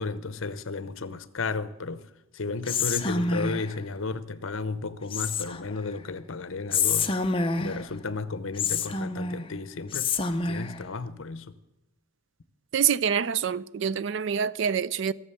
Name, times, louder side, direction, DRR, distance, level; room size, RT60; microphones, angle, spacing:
voice 1, 0.0-2.1 2.3-7.1 7.5-10.2 10.4-11.5, left 3 dB, 60° left, 0.7 m, -33 dB
Whispering, 2.7-3.8 5.1-5.8 6.7-7.9 8.6-9.5 9.9-10.8, left 4 dB, 25° left, 0.6 m, -27 dB
voice 2, 12.7-15.1, right 8 dB, 55° right, 0.4 m, -26 dB
16.0 x 7.4 x 7.0 m
head